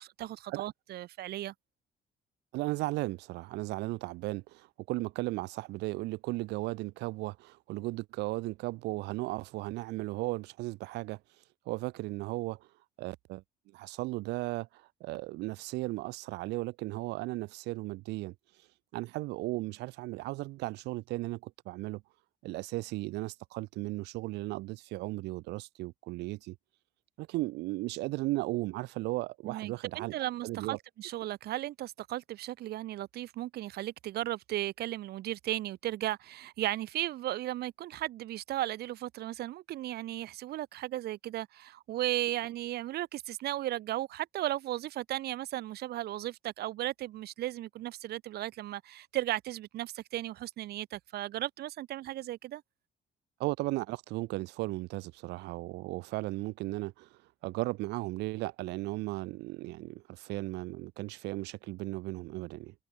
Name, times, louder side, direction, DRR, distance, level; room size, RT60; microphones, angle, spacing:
voice 1, 0.0-1.5 29.4-52.6, right 14 dB, 70° right, 2.0 m, -36 dB
voice 2, 2.5-11.2 11.6-12.7 13.0-13.4 13.7-18.3 18.9-22.0 22.4-26.5 27.2-30.1 30.4-30.8 53.4-62.7, right 20 dB, 90° right, 3.4 m, -36 dB
cardioid pair, 110°, 17 cm